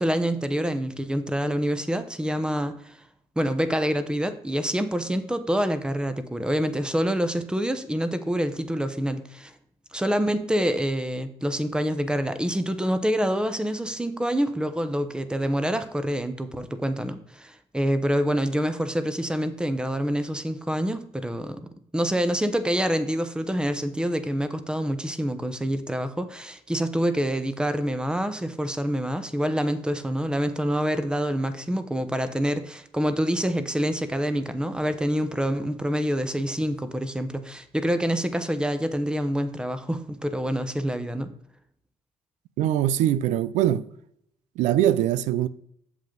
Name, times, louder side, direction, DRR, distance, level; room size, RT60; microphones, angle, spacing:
voice 1, 0.0-3.0 3.4-9.5 9.9-41.3, equal, 5° right, 0.9 m, -26 dB
voice 2, 42.6-43.8 44.6-45.5, right 12 dB, 90° right, 0.5 m, -22 dB
8.1 x 7.3 x 3.9 m
cardioid pair, 95°, 12 cm